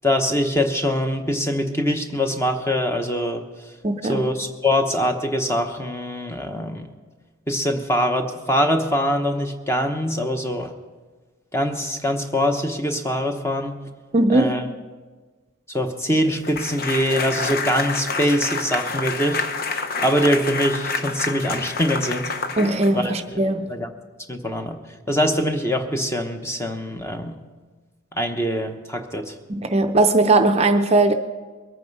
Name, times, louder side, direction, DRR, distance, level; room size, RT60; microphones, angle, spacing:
voice 1, 0.0-3.5 4.0-6.9 7.5-10.7 11.5-13.8 14.3-14.6 15.7-19.4 20.0-22.3 22.9-23.1 23.7-23.9 24.3-24.8 25.1-27.3 28.1-29.3, equal, 15° left, 0.9 m, -23 dB
voice 2, 3.8-4.3 14.1-14.6 22.6-23.7 29.5-31.1, right 2 dB, 30° right, 0.6 m, -19 dB
sound 1, 16.4-23.2, left 4 dB, 45° left, 0.8 m, -28 dB
22.0 x 9.1 x 5.4 m
head